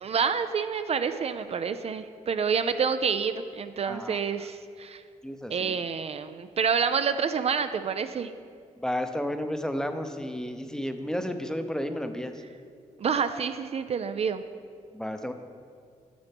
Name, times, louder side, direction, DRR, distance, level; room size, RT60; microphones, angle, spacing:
voice 1, 0.0-5.0 5.5-8.3 13.0-14.4, right 6 dB, 50° right, 10 dB, 0.4 m, -28 dB
voice 2, 3.8-4.2 5.2-5.8 8.8-12.3 14.9-15.3, equal, 5° left, 7 dB, 0.7 m, -32 dB
9.8 x 7.1 x 3.5 m, 2.2 s
cardioid pair, 65°, 14 cm